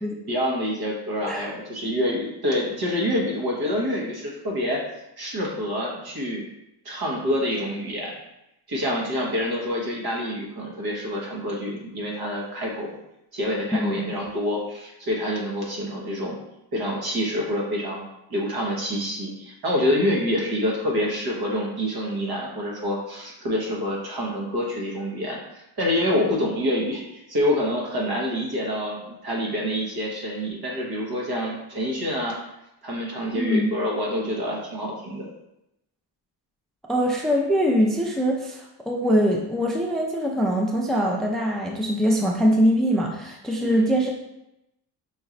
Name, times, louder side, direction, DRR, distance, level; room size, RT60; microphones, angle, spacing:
voice 1, 0.3-4.8 5.2-6.4 6.8-8.2 8.7-13.0 13.3-16.4 16.7-18.0 18.3-27.0 27.3-32.3 32.8-35.3 43.6-43.9, equal, 60° right, -3 dB, 1.3 m, -27 dB
voice 2, 13.7-14.2 33.3-33.7 36.9-44.1, equal, ahead, -1 dB, 0.4 m, -23 dB
5.0 x 3.0 x 2.5 m, 0.87 s
cardioid pair, 95°, 43 cm